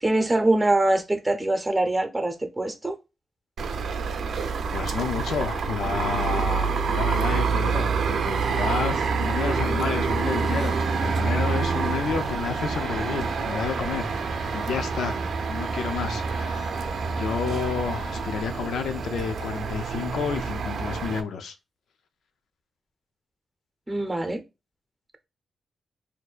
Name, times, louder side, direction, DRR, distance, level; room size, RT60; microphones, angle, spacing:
voice 1, 0.0-3.0 23.9-24.4, right 2 dB, 20° right, 0.8 m, -23 dB
sound 1, 3.6-21.2, right 5 dB, 75° right, 0.5 m, -27 dB
voice 2, 4.7-15.2 15.5-21.5, left 6 dB, 85° left, 0.5 m, -31 dB
sound 2, 10.2-18.4, right 2 dB, 35° left, 0.9 m, -39 dB
4.3 x 2.6 x 2.4 m
cardioid pair, 75°, 0 cm